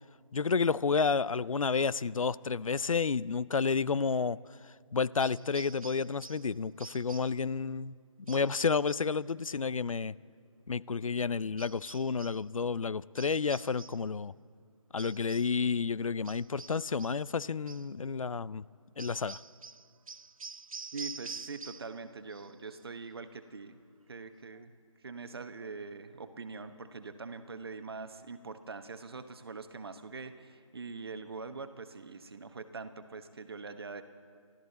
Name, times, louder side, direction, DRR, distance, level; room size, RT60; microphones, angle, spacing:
voice 1, 0.3-4.4 4.9-7.9 8.3-10.1 10.7-14.3 14.9-18.6 19.0-19.4, left 5 dB, 75° left, 20 dB, 0.5 m, -30 dB
sound 1, 5.2-6.5 6.8-7.4 8.3-9.1 11.6-12.4 13.2-14.1 15.0-15.6 16.2-17.3 17.7-17.9 19.0-22.0 22.3-22.8, right 5 dB, 85° right, 0.6 m, -47 dB
voice 2, 20.9-23.8 24.1-24.7 25.0-34.0, right 4 dB, 45° right, 10 dB, 1.1 m, -43 dB
27.0 x 13.0 x 4.1 m, 2.1 s
figure-of-eight pair, 165°, 17 cm